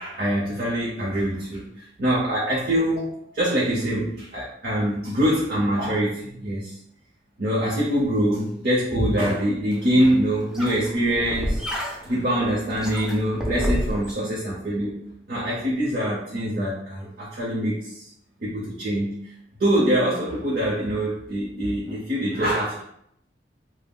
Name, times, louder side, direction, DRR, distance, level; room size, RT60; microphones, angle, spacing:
voice 1, 0.0-6.7 7.4-11.6 12.0-14.9 15.3-18.0 18.4-19.2 19.6-22.8, equal, 55° right, -6 dB, 0.7 m, -24 dB
sound 1, 9.7-14.1, equal, 5° right, 0.3 m, -30 dB
3.6 x 2.0 x 2.3 m, 0.71 s
head